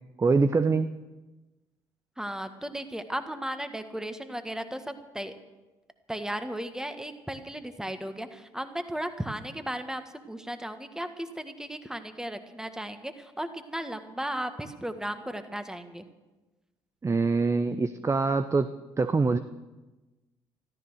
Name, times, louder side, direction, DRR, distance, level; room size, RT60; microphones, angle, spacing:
voice 1, 0.2-0.9 17.0-18.7 19.0-19.4, right 4 dB, 25° right, 11 dB, 0.7 m, -24 dB
voice 2, 2.2-5.3 6.1-16.0, right 1 dB, 5° right, 8 dB, 1.7 m, -35 dB
14.0 x 13.5 x 6.4 m, 1.1 s
hypercardioid pair, 55°, 12 cm